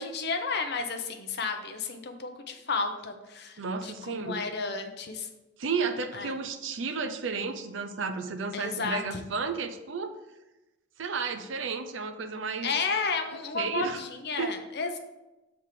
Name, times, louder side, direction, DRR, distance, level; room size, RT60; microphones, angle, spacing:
voice 1, 0.0-5.3 6.1-6.3 8.5-9.2 12.6-15.0, left 4 dB, 60° left, 6 dB, 0.8 m, -32 dB
voice 2, 3.6-4.4 5.6-10.1 11.0-12.7 13.3-14.0 14.4-14.6, right 5 dB, 85° right, 7 dB, 0.6 m, -32 dB
7.4 x 3.6 x 4.8 m, 1.0 s
head